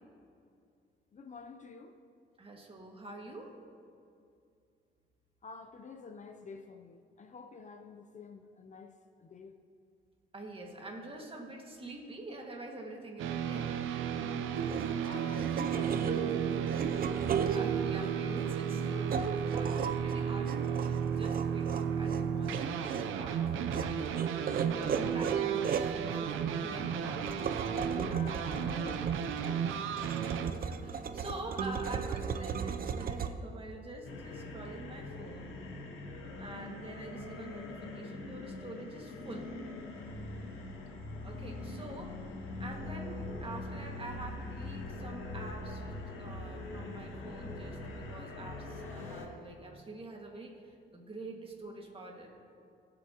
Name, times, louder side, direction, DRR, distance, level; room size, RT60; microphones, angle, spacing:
voice 1, 1.1-1.9 5.4-8.9 9.2-9.5 15.0-17.0 26.1-26.4 27.9-29.4, left 4 dB, 40° left, 6 dB, 0.7 m, -48 dB
voice 2, 2.4-3.5 10.3-13.7 17.5-22.8 23.2-24.3 24.6-27.3 30.5-35.5 36.4-39.5 41.2-42.1 42.4-52.4, right 2 dB, 30° right, 0 dB, 2.1 m, -46 dB
sound 1, 13.2-30.5, right 7 dB, 85° right, 0.7 m, -34 dB
sound 2, 14.5-33.3, right 7 dB, 45° right, 0.7 m, -36 dB
sound 3, 34.0-49.3, left 2 dB, 90° left, 1.9 m, -42 dB
20.0 x 7.8 x 3.0 m, 2.4 s
cardioid pair, 90°, 20 cm